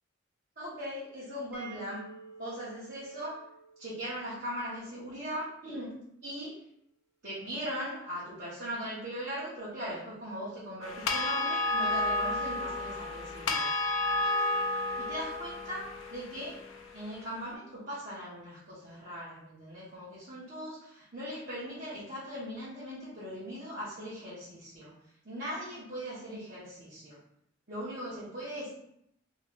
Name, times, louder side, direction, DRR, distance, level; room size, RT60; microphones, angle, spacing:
voice 1, 0.6-2.1 2.4-3.4 3.8-6.5 7.2-13.7 15.0-15.8 16.1-16.6 16.9-24.9 25.2-27.2 27.7-28.8, equal, 50° right, -11 dB, 1.2 m, -39 dB
sound 1, 1.5-5.2, right 4 dB, 10° right, 0.7 m, -51 dB
sound 2, 10.8-17.2, left 2 dB, 80° left, 0.5 m, -31 dB
3.0 x 2.3 x 3.7 m, 0.75 s
head